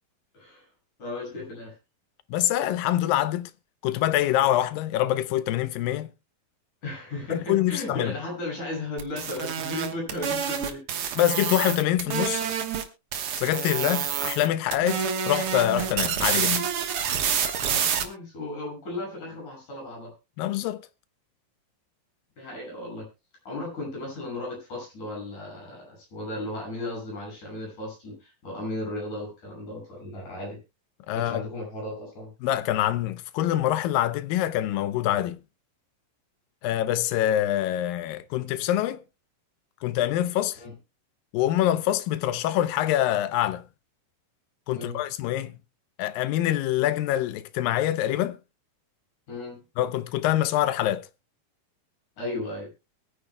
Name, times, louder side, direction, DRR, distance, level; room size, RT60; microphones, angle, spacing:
voice 1, 0.3-0.7 1.0-1.8 6.8-10.8 14.1-14.3 17.7-20.1 22.4-23.1 23.5-30.6 31.1-32.3 40.6-40.7 44.7-45.0 49.3-49.6 52.2-52.7, left 2 dB, 55° left, 7.8 m, -35 dB
voice 2, 2.3-3.5 3.8-6.1 7.3-8.1 11.2-12.4 13.4-16.7 20.4-20.8 31.1-31.5 32.4-35.4 36.6-39.0 39.8-40.6 41.3-43.6 44.7-45.5 46.0-48.4 49.8-51.1, left 13 dB, 80° left, 2.5 m, -25 dB
sound 1, 9.0-12.8 13.1-14.5 14.7-18.0, right 8 dB, 60° right, 1.6 m, -28 dB
22.5 x 9.6 x 2.2 m
omnidirectional pair, 4.0 m